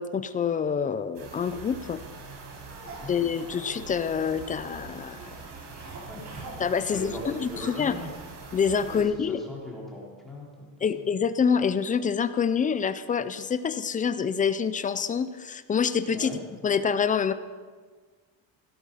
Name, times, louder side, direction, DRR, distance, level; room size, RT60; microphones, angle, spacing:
voice 1, 0.0-2.0 3.1-5.3 6.6-8.0 8.5-9.4 10.8-17.3, left 6 dB, 20° left, 12 dB, 0.3 m, -26 dB
sound 1, 1.1-9.0, right 4 dB, 75° right, 4.9 m, -44 dB
sound 2, 2.7-8.1, right 2 dB, 35° right, 4.4 m, -45 dB
voice 2, 2.8-3.1 6.1-6.2 6.9-8.1 8.9-10.7 16.1-16.4, left 1 dB, ahead, -5 dB, 4.0 m, -39 dB
17.0 x 12.5 x 5.6 m, 1.5 s
cardioid pair, 155°, 47 cm